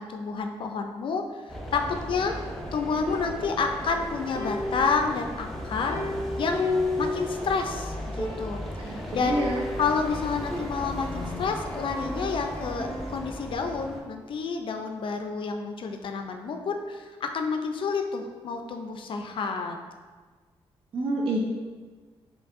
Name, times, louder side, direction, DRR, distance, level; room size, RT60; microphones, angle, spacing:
voice 1, 0.0-2.3 2.7-6.0 6.4-6.7 7.0-9.4 9.8-19.8, left 5 dB, 60° left, 4 dB, 0.4 m, -29 dB
sound 1, 1.5-14.0, equal, ahead, 0.6 m, -36 dB
sound 2, 2.2-4.0 4.3-7.6 7.9-8.0 8.2-8.8 9.3-11.3 11.7-13.4, left 2 dB, 25° left, 1.3 m, -34 dB
voice 2, 8.8-9.6 20.9-21.4, right 1 dB, 65° right, -2 dB, 0.5 m, -28 dB
5.2 x 2.6 x 2.5 m, 1.4 s
cardioid pair, 95°, 10 cm